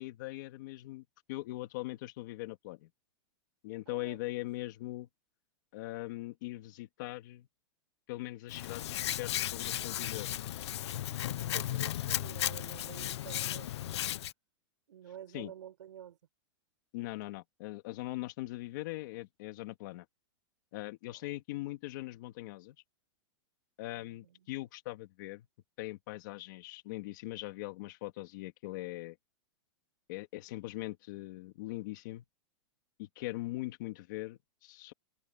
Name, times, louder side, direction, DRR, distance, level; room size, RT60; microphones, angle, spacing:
voice 1, 0.0-2.9 3.6-5.1 5.7-7.5 8.1-10.3 15.3-15.5 16.9-20.1 20.7-22.8 23.8-25.5 25.8-29.2 30.1-32.2 33.0-34.9, left 18 dB, 40° left, 2.3 m, -41 dB
voice 2, 3.9-4.7 10.2-14.1 14.9-16.2 21.0-21.2 23.9-24.5, right 10 dB, 80° right, 7.5 m, -51 dB
Hands, 8.5-14.3, left 13 dB, 65° left, 0.8 m, -35 dB
supercardioid pair, 175°, 15 cm